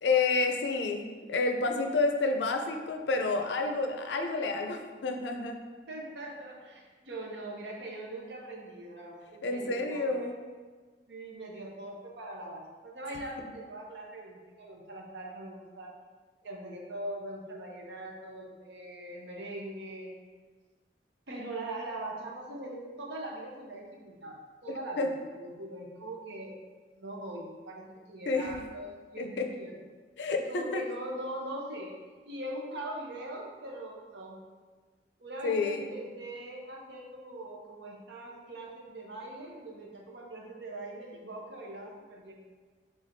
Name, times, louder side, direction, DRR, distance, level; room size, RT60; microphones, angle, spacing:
voice 1, 0.0-5.6 9.4-10.3 24.7-25.1 28.3-28.7 29.2-29.5 30.2-30.8 35.4-35.9, left 3 dB, 75° left, 4 dB, 0.5 m, -29 dB
voice 2, 5.9-10.4 11.1-15.9 16.4-20.1 21.3-26.5 27.0-29.7 30.5-32.0 32.3-34.4 35.2-42.3, right 1 dB, 75° right, -1 dB, 0.8 m, -41 dB
5.0 x 3.5 x 2.6 m, 1.4 s
head